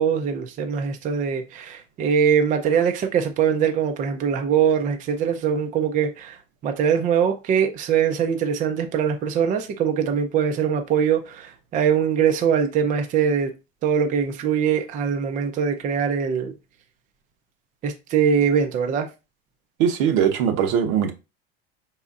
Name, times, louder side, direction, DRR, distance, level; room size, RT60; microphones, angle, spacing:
voice 1, 0.0-6.4 6.6-13.5 13.8-16.5 17.8-19.1, right 7 dB, 25° right, 0.5 m, -22 dB
voice 2, 19.8-21.1, right 8 dB, 70° right, 0.9 m, -20 dB
4.8 x 4.1 x 2.4 m
supercardioid pair, 145°, 30 cm